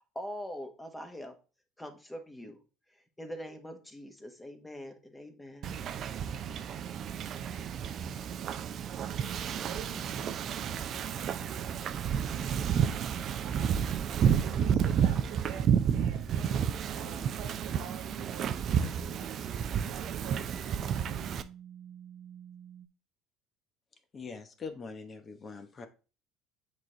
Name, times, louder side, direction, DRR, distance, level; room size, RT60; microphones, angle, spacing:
voice 1, 0.1-1.3 1.8-2.6 3.2-5.7, equal, 10° left, 1.3 m, -43 dB
Wind / Ocean, 5.6-21.4, right 8 dB, 50° right, 0.5 m, -31 dB
voice 2, 9.6-12.8 13.4-14.0 14.4-21.1, right 6 dB, 65° right, 1.4 m, -48 dB
sound 1, 20.2-22.9, right 7 dB, 10° right, 0.9 m, -53 dB
voice 3, 24.1-25.9, left 4 dB, 35° left, 1.0 m, -43 dB
8.0 x 3.2 x 3.8 m
hypercardioid pair, 70°, 0 cm